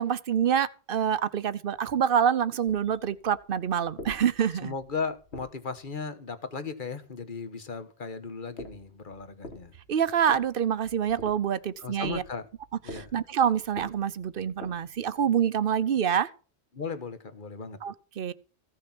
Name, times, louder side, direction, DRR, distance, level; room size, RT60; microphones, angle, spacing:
voice 1, 0.0-4.7 9.9-12.2 12.9-16.3 17.8-18.3, right 8 dB, 60° right, 0.9 m, -26 dB
sound 1, 2.6-6.0 8.5-15.2, left 1 dB, 85° left, 2.8 m, -47 dB
voice 2, 4.6-9.7 11.8-12.5 12.8-13.1 16.7-17.8, left 5 dB, 50° left, 1.5 m, -36 dB
15.5 x 6.4 x 6.0 m
omnidirectional pair, 1.1 m